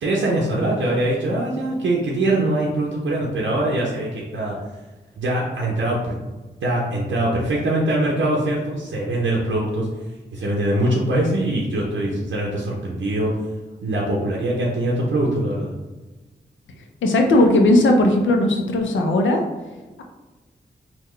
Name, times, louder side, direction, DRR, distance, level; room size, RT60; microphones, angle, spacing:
voice 1, 0.0-4.6 5.2-6.2 6.6-9.9 10.3-13.4 13.8-15.7, right 1 dB, 85° right, -4 dB, 0.6 m, -22 dB
voice 2, 17.0-19.4, left 1 dB, 85° left, 3 dB, 0.5 m, -17 dB
3.7 x 2.2 x 3.1 m, 1.2 s
cardioid pair, 40°, 19 cm